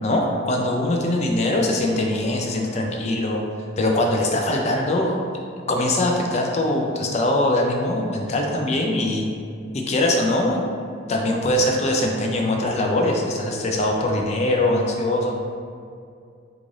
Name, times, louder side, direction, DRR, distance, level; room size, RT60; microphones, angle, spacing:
voice 1, 0.0-3.4 3.8-5.2 5.7-9.3 9.7-10.6 11.1-15.4, left 1 dB, 35° left, 1 dB, 0.4 m, -22 dB
3.8 x 2.5 x 3.1 m, 2.4 s
head